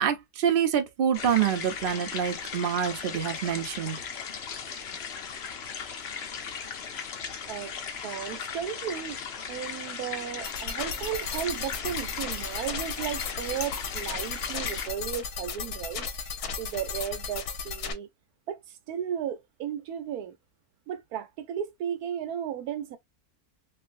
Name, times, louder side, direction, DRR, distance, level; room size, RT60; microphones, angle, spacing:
voice 1, 0.0-4.0, right 8 dB, 50° right, 0.6 m, -26 dB
sound 1, 1.1-14.9, left 6 dB, 55° left, 0.8 m, -37 dB
voice 2, 8.0-9.2 9.5-16.3 16.6-18.1 18.5-18.6 18.9-20.3 20.9-23.0, right 9 dB, 80° right, 1.1 m, -34 dB
sound 2, 10.4-17.9, left 5 dB, 75° left, 1.2 m, -35 dB
3.2 x 2.6 x 2.5 m
omnidirectional pair, 1.7 m